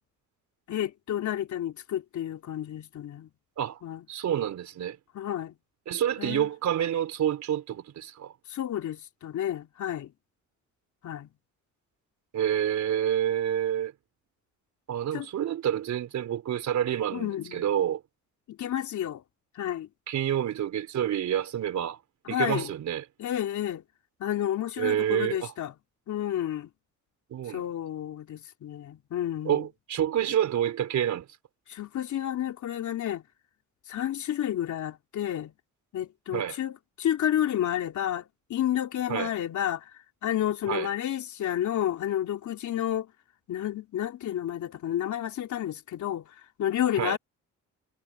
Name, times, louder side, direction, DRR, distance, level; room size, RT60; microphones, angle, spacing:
voice 1, 0.7-3.3 3.8-4.0 5.1-5.5 6.2-6.5 8.5-10.1 11.0-11.3 15.1-15.3 17.1-17.6 18.5-19.2 19.6-19.9 22.3-22.7 23.2-23.8 24.2-25.7 26.1-26.7 27.5-29.7 31.7-33.2 33.9-35.5 35.9-39.9 40.2-43.1 43.5-46.3 46.6-47.2, left 11 dB, 70° left, 3.7 m, -30 dB
voice 2, 4.1-5.0 5.9-8.3 12.3-13.9 14.9-18.0 20.1-22.0 22.3-23.0 24.8-25.5 27.3-27.6 29.4-31.3 36.3-36.6 39.1-39.3 40.7-40.9 47.0-47.2, right 10 dB, 70° right, 4.0 m, -28 dB
cardioid pair, 90°, 30 cm